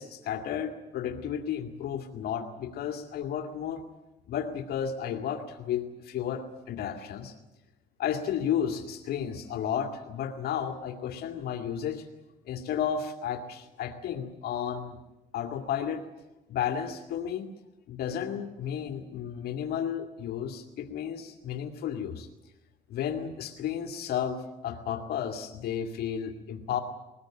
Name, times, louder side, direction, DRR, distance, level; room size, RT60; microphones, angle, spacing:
voice 1, 0.0-3.8 4.3-7.3 8.0-12.1 12.5-15.0 15.3-16.1 16.5-17.5 17.9-22.3 22.9-26.8, left 8 dB, 70° left, 4 dB, 2.2 m, -33 dB
21.5 x 19.5 x 9.0 m, 1.0 s
cardioid pair, 110°, 17 cm